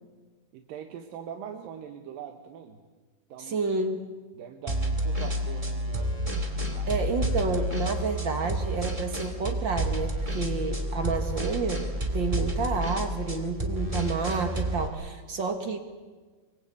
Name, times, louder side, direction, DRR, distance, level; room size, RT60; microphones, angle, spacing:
voice 1, 0.5-2.8 3.3-3.6 4.3-7.0, right 8 dB, 85° right, 4 dB, 3.0 m, -42 dB
voice 2, 3.5-4.0 6.9-11.9 12.1-15.8, right 4 dB, 40° right, 5 dB, 2.1 m, -30 dB
sound 1, 4.7-14.9, equal, 10° right, 1.9 m, -30 dB
24.0 x 24.0 x 8.4 m, 1.4 s
omnidirectional pair, 3.9 m